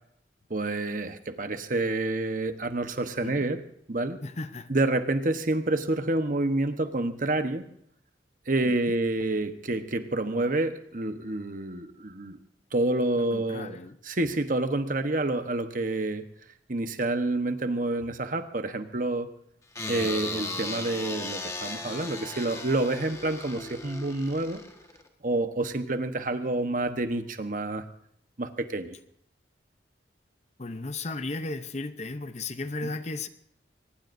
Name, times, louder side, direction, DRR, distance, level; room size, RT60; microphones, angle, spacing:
voice 1, 0.5-3.6 3.9-4.2 4.7-7.6 8.5-12.4 12.7-13.8 14.0-16.3 16.7-19.3 19.9-24.6 25.2-27.8 28.4-29.0 32.8-32.9, right 2 dB, 50° right, 8 dB, 1.1 m, -28 dB
voice 2, 4.2-4.7 8.6-8.9 13.2-14.0 19.8-20.1 30.6-33.3, left 2 dB, 40° left, 11 dB, 0.7 m, -35 dB
sound 1, 19.7-25.1, left 3 dB, 15° left, 1.5 m, -37 dB
23.0 x 19.5 x 2.7 m, 0.70 s
head